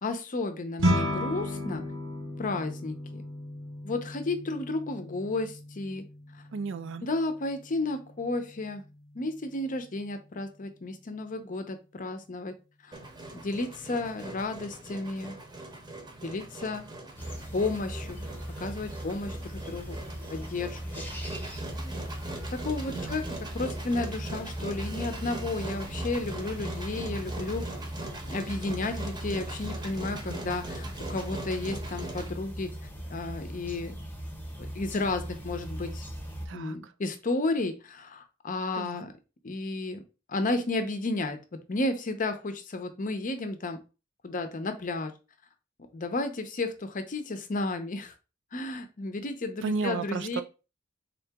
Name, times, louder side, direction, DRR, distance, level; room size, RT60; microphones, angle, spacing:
voice 1, 0.0-1.8 2.4-3.2 3.8-6.0 7.0-8.8 9.1-12.6 12.8-12.9 13.3-15.4 16.2-16.8 17.5-18.3 18.6-20.0 20.3-21.0 21.8-21.9 22.5-27.7 28.3-32.7 33.1-33.9 34.6-36.0 36.5-39.1 39.4-40.0 40.3-43.8 44.2-45.1 45.9-48.1 48.5-50.4, left 2 dB, 40° left, 0.6 m, -32 dB
sound 1, 0.8-10.3, equal, 85° right, 1.1 m, -35 dB
voice 2, 6.5-7.0 22.9-23.2 30.3-30.6 36.5-36.9 38.7-39.1 49.6-50.4, right 4 dB, 65° right, 0.4 m, -34 dB
Engine, 12.9-32.3, right 2 dB, 20° right, 0.8 m, -41 dB
sound 2, 17.2-36.5, equal, 10° left, 0.9 m, -39 dB
3.8 x 2.8 x 3.4 m
head